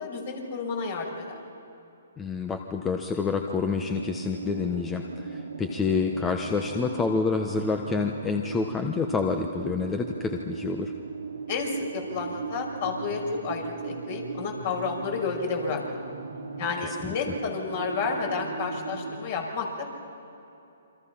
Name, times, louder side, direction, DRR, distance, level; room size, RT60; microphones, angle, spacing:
voice 1, 0.0-1.3 11.5-15.8 16.6-19.9, left 4 dB, 50° left, 1 dB, 6.1 m, -31 dB
voice 2, 2.2-10.9 16.8-17.1, left 5 dB, 15° left, 4 dB, 1.2 m, -28 dB
sound 1, 3.7-19.3, right 4 dB, 85° right, 2.5 m, -38 dB
28.0 x 25.0 x 5.8 m, 2.8 s
hypercardioid pair, 140°, 0 cm